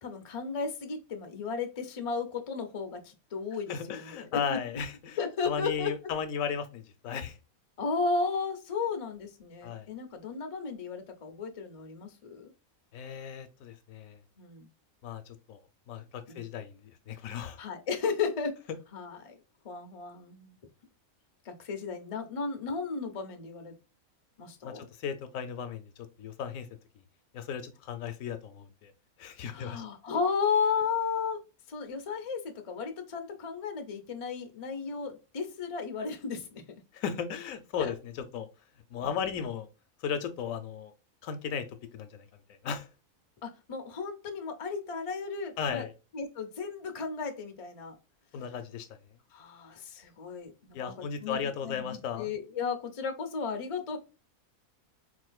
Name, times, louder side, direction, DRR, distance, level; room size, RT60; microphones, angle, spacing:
voice 1, 0.0-4.6 5.2-5.9 7.8-12.5 14.4-14.7 16.3-16.4 17.6-18.6 18.9-19.4 19.6-20.6 21.4-23.7 24.4-24.9 29.5-31.4 31.7-36.8 37.8-37.9 43.4-45.8 46.1-47.9 49.3-54.0, left 5 dB, 45° left, 5 dB, 0.4 m, -34 dB
voice 2, 3.7-5.2 5.4-7.4 9.6-9.9 12.9-14.2 15.0-15.6 15.9-16.8 17.1-17.6 24.6-25.9 26.2-26.7 27.3-28.9 29.2-29.8 36.9-37.9 38.3-38.5 38.9-39.7 40.0-40.9 41.2-41.7 41.9-42.3 42.6-42.9 45.6-45.9 48.3-48.9 50.7-52.3, left 7 dB, 75° left, 10 dB, 0.9 m, -35 dB
4.2 x 2.5 x 2.3 m, 0.31 s
omnidirectional pair, 1.5 m